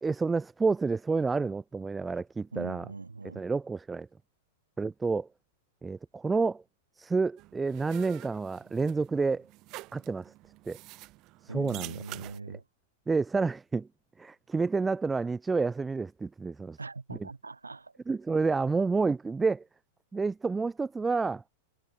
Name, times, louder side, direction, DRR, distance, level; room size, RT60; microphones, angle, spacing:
voice 1, 0.0-2.9 3.4-4.1 4.8-5.3 5.8-6.6 7.0-9.5 9.9-10.3 10.7-10.8 11.4-11.9 13.1-13.9 14.2-16.8 18.1-19.6 20.1-21.4, right 4 dB, 10° right, 0.4 m, -29 dB
voice 2, 2.5-3.4 11.5-12.6 16.8-18.0, right 3 dB, 80° right, 1.4 m, -41 dB
sound 1, 7.4-12.4, right 20 dB, 35° right, 2.1 m, -47 dB
figure-of-eight pair, 95°, 0 cm